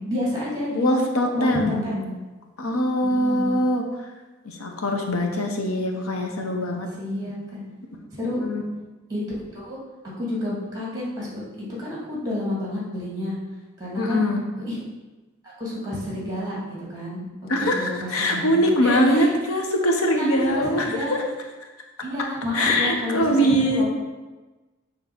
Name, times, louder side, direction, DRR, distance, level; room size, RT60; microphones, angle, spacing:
voice 1, 0.0-0.9 1.3-2.1 3.0-3.6 4.9-5.0 5.4-5.5 7.0-7.6 8.1-8.4 9.1-9.2 9.5-9.8 10.2-11.4 11.8-13.3 13.8-14.2 14.7-14.8 15.4-17.2 17.6-19.3 20.1-20.3 20.5-21.2 22.0-23.8, left 1 dB, 15° right, -5 dB, 2.0 m, -30 dB
voice 2, 0.8-1.9 2.6-3.9 4.4-6.9 8.4-8.6 14.0-14.4 17.5-21.2 22.5-23.8, equal, 75° left, 3 dB, 0.8 m, -22 dB
6.7 x 3.1 x 5.9 m, 1.2 s
head